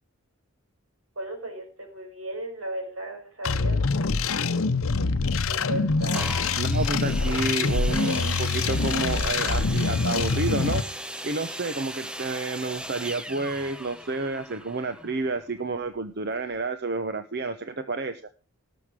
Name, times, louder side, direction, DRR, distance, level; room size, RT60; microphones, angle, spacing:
voice 1, 1.2-4.7 5.5-6.3, right 1 dB, 75° right, 4 dB, 5.6 m, -36 dB
sound 1, 3.4-10.8, left 4 dB, 75° left, 0.8 m, -25 dB
sound 2, 6.1-15.8 16.5-16.6, right 1 dB, 5° right, 0.7 m, -37 dB
voice 2, 6.6-10.8 11.2-18.3, right 3 dB, 50° right, 9 dB, 0.9 m, -30 dB
18.5 x 7.2 x 5.0 m, 0.36 s
head